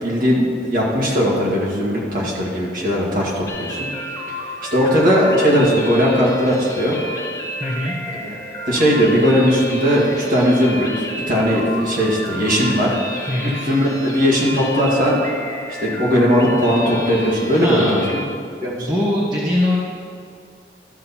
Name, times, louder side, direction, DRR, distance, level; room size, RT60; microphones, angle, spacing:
voice 1, 0.0-3.9 4.7-7.0 8.2-8.3 8.7-12.9 13.4-15.2 15.8-18.2 18.6-18.9, equal, 50° right, -5 dB, 2.2 m, -18 dB
sound 1, 3.5-18.2, left 1 dB, 20° left, 0.7 m, -31 dB
voice 2, 7.6-7.9 13.3-13.6 17.6-18.0 18.8-19.8, left 1 dB, 25° right, -8 dB, 1.3 m, -21 dB
12.5 x 6.4 x 4.3 m, 2.4 s
head